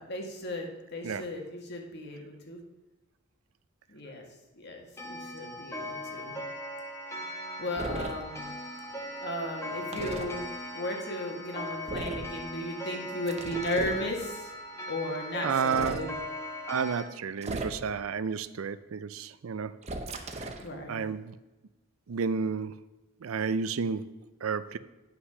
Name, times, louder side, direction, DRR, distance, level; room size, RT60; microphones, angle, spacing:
voice 1, 0.0-2.6 3.9-4.2 4.6-6.4 7.6-8.6 9.2-10.5 10.7-14.5 14.9-16.1 20.6-21.1, left 1 dB, 55° left, 2 dB, 1.7 m, -35 dB
Clock, 5.0-17.0, left 1 dB, 15° left, 1.2 m, -39 dB
sound 1, 7.8-8.1 9.9-10.3 11.9-12.3 13.3-14.0 15.6-16.0 17.4-18.0 19.8-20.7, right 2 dB, 30° right, 0.9 m, -36 dB
voice 2, 15.4-16.1 16.7-19.7 20.4-20.5 20.9-21.3 22.1-22.7 23.2-24.0 24.4-24.8, right 6 dB, 85° right, 14 dB, 0.5 m, -31 dB
9.9 x 5.9 x 5.5 m, 1.1 s
head